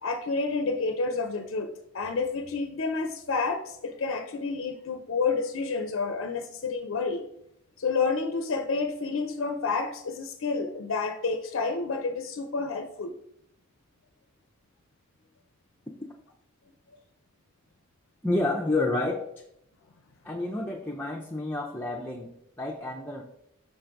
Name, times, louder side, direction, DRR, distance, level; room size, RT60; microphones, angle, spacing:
voice 1, 0.0-7.3 7.8-13.2, left 4 dB, 60° left, 6 dB, 0.5 m, -29 dB
voice 2, 18.2-19.3 20.2-23.2, left 2 dB, 10° left, -1 dB, 0.5 m, -29 dB
6.3 x 3.8 x 4.6 m, 0.75 s
head